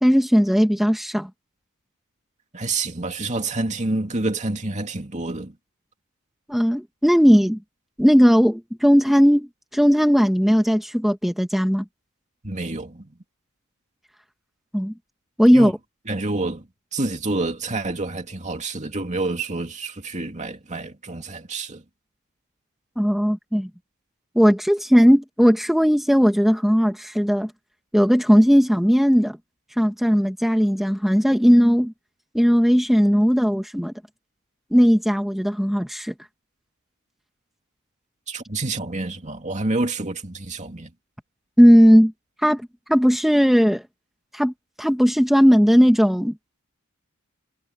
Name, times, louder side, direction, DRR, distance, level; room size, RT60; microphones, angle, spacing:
voice 1, 0.0-1.3 6.5-7.6 8.0-11.8 14.7-14.9 15.4-15.7 23.0-23.7 24.4-27.5 27.9-29.4 29.8-31.9 32.3-33.9 34.7-36.1 41.6-42.1 42.4-42.6 42.9-43.8 44.3-46.3, equal, ahead, 1.8 m, -17 dB
voice 2, 2.5-5.5 12.4-13.1 15.5-15.7 16.1-16.7 16.9-21.8 38.3-40.9, right 2 dB, 35° right, 2.5 m, -28 dB
head